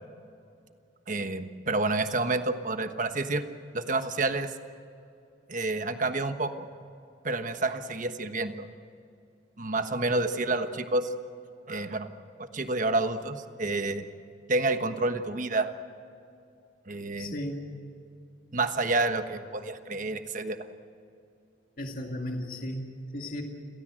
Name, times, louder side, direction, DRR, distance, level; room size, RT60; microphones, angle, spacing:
voice 1, 1.1-3.5 3.7-4.5 5.5-6.7 7.2-8.7 9.6-11.1 11.7-12.1 12.5-14.0 14.5-15.7 16.9-17.4 18.5-20.7, right 2 dB, 45° right, 8 dB, 1.3 m, -29 dB
voice 2, 17.2-17.7 21.8-23.4, left 1 dB, 50° left, 2 dB, 2.2 m, -35 dB
29.5 x 17.0 x 7.7 m, 2.5 s
head